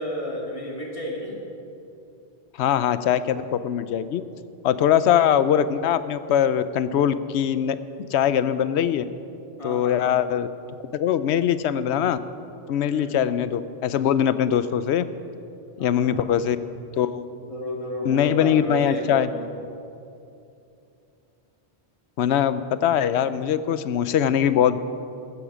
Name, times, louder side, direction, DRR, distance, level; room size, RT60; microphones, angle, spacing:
voice 1, 0.0-1.4 9.6-10.2 12.9-13.1 15.8-16.4 17.4-19.5, equal, 30° left, -2 dB, 2.3 m, -32 dB
voice 2, 2.6-4.2 4.6-7.8 8.1-9.0 9.6-10.5 10.9-12.2 12.7-15.0 15.8-16.6 17.0-17.3 18.0-19.3 22.2-24.8, left 9 dB, 80° left, 14 dB, 0.9 m, -22 dB
15.0 x 12.0 x 4.9 m, 2.7 s
omnidirectional pair, 1.1 m